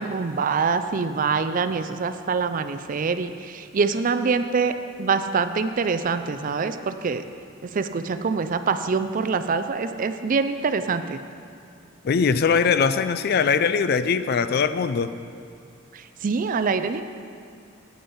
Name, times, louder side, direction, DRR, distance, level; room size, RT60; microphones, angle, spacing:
voice 1, 0.0-7.2 7.7-11.2 15.9-17.0, right 5 dB, 40° right, 10 dB, 0.4 m, -25 dB
voice 2, 12.0-15.1, left 6 dB, 50° left, 12 dB, 0.4 m, -21 dB
8.7 x 8.6 x 5.5 m, 2.5 s
head